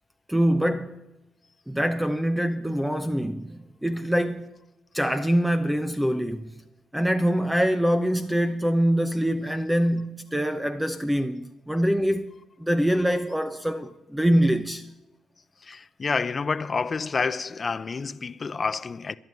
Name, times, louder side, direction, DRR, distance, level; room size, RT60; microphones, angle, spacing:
voice 1, 0.3-1.0 1.7-4.5 4.9-6.5 6.9-12.3 12.6-14.9, equal, 5° right, 0.7 m, -24 dB
voice 2, 15.6-19.2, left 4 dB, 35° left, 0.6 m, -28 dB
12.5 x 11.0 x 8.9 m
cardioid pair, 90°, 0 cm